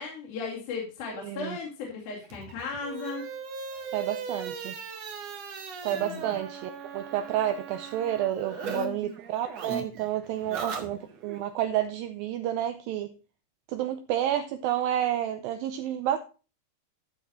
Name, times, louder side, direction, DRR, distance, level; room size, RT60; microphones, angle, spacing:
voice 1, 0.0-3.2 5.9-6.3 8.5-9.1 10.5-10.6, left 5 dB, 65° left, 4.0 m, -37 dB
voice 2, 1.2-1.6 3.9-4.8 5.8-13.1 13.7-16.2, right 11 dB, 80° right, 2.1 m, -30 dB
sound 1, 2.2-8.9 9.1-11.4, right 5 dB, 55° right, 2.2 m, -38 dB
12.5 x 6.4 x 4.2 m
omnidirectional pair, 4.6 m